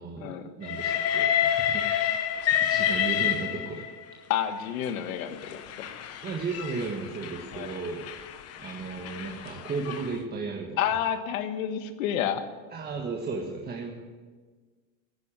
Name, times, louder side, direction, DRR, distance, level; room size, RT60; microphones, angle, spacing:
voice 1, 0.0-1.8 2.4-3.9 6.2-8.1 8.6-10.8 12.7-13.9, right 4 dB, 25° right, -1 dB, 1.6 m, -35 dB
Train, 0.6-4.0 4.9-10.1, left 10 dB, 35° left, 1.1 m, -29 dB
voice 2, 4.3-5.6 7.5-7.8 10.8-12.4, left 9 dB, 75° left, 9 dB, 1.6 m, -29 dB
13.0 x 10.0 x 9.0 m, 1.4 s
supercardioid pair, 135°, 41 cm